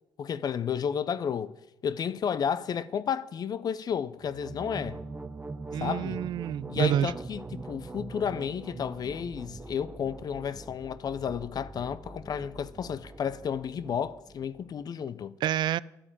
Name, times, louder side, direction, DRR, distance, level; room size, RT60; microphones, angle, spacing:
voice 1, 0.2-1.5 1.8-5.0 5.8-6.2 6.7-15.3, left 7 dB, 50° left, 0.7 m, -32 dB
sound 1, 4.2-14.8, right 2 dB, 20° right, 1.1 m, -43 dB
voice 2, 5.7-7.1 15.4-15.8, right 11 dB, 60° right, 0.4 m, -28 dB
11.5 x 9.6 x 8.9 m
supercardioid pair, 65°, 8 cm